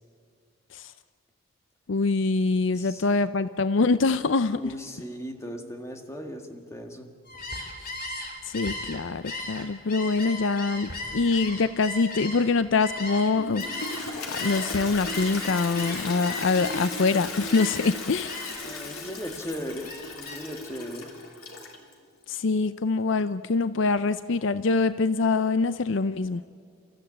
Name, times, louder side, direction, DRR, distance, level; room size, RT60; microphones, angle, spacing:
voice 1, 1.9-4.6 8.4-13.6 14.3-18.4 22.3-26.4, left 3 dB, 60° left, 13 dB, 0.5 m, -24 dB
voice 2, 2.7-3.1 4.5-7.1 18.6-21.1, equal, 15° left, 4 dB, 1.7 m, -37 dB
Gull seagull, 7.3-14.0 14.3-17.1 17.5-17.9 18.2-18.7 19.1-20.6, left 2 dB, 40° left, 4.0 m, -37 dB
Toilet flush, 13.4-21.9, left 3 dB, 90° left, 3.5 m, -36 dB
30.0 x 14.5 x 8.7 m, 2.2 s
head